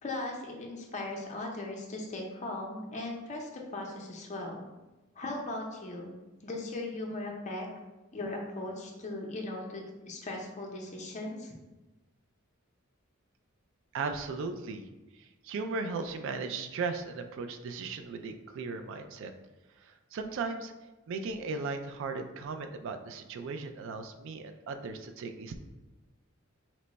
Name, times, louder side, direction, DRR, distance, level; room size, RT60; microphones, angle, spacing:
voice 1, 0.0-4.6 5.2-6.1 6.4-7.7 8.1-11.5, left 2 dB, 35° left, 0 dB, 0.5 m, -38 dB
voice 2, 13.9-14.9 15.1-19.3 19.8-20.7 21.1-25.6, right 4 dB, 65° right, 7 dB, 0.3 m, -37 dB
3.0 x 2.2 x 3.9 m, 1.1 s
head